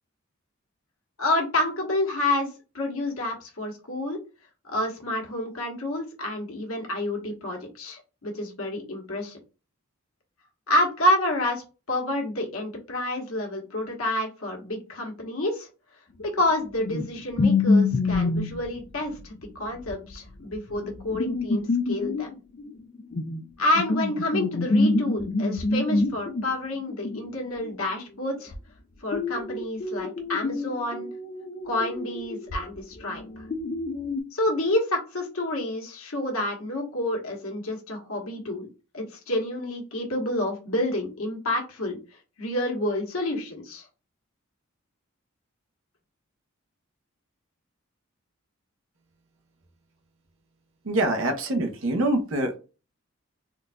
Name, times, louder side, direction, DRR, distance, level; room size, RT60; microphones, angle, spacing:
voice 1, 1.2-2.5 2.7-4.2 4.6-9.4 10.7-15.7 16.2-22.4 23.6-28.5 29.0-31.1 31.6-33.4 34.3-38.7 38.9-42.0 42.4-43.8, left 1 dB, 90° left, 1 dB, 1.2 m, -28 dB
sound 1, 16.4-16.5 16.8-17.1 17.4-18.7 19.0-19.1 19.3-19.4 19.9-23.4 23.7-26.5 26.9-27.7 28.5-28.6 29.1-34.2, left 3 dB, 40° left, 0.4 m, -26 dB
voice 2, 50.8-52.6, right 1 dB, 70° right, 5 dB, 0.8 m, -25 dB
3.8 x 2.5 x 2.2 m, 0.32 s
head